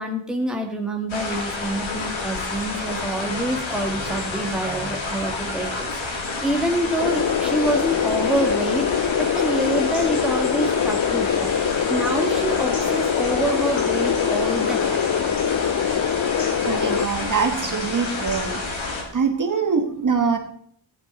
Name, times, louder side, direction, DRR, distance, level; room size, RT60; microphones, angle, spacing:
voice 1, 0.0-11.5 11.9-15.1, right 1 dB, ahead, 1 dB, 1.6 m, -26 dB
sound 1, 1.1-19.0, left 3 dB, 90° left, 3.1 m, -29 dB
sound 2, 7.0-17.1, left 8 dB, 50° left, 0.6 m, -23 dB
voice 2, 16.6-18.6 19.1-20.4, right 5 dB, 45° right, 4 dB, 1.5 m, -23 dB
15.0 x 9.6 x 4.2 m, 0.63 s
wide cardioid pair, 175°, 45 cm